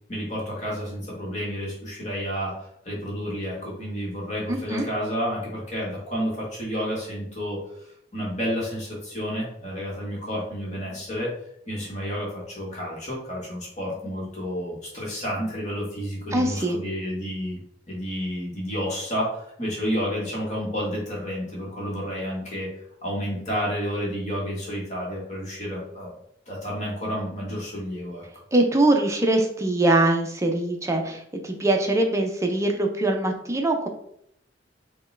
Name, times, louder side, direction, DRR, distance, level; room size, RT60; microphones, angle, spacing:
voice 1, 0.1-11.3 11.7-17.6 17.9-22.7 23.0-26.1 26.5-28.2, equal, 35° left, -4 dB, 1.4 m, -30 dB
voice 2, 4.5-4.8 16.3-16.8 28.5-33.9, right 2 dB, 15° right, 3 dB, 0.5 m, -22 dB
5.3 x 2.3 x 3.3 m, 0.70 s
head